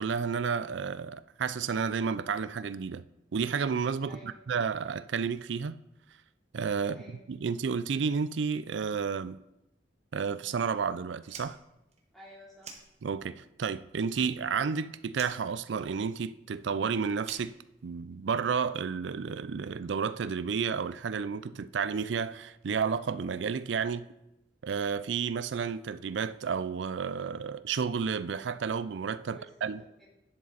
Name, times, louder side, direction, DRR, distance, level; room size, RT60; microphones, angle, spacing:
voice 1, 0.0-3.0 3.3-5.8 6.5-7.0 7.3-9.4 10.1-11.6 13.0-17.5 17.8-24.1 24.6-29.8, right 6 dB, 80° right, 0.4 m, -31 dB
voice 2, 4.1-4.4 6.8-7.2 12.1-12.7 29.3-29.5 29.7-30.1, equal, ahead, 3.3 m, -52 dB
Fire, 11.2-13.5 13.7-14.7 15.1-18.3, right 5 dB, 35° right, 1.4 m, -49 dB
11.0 x 7.6 x 4.0 m
head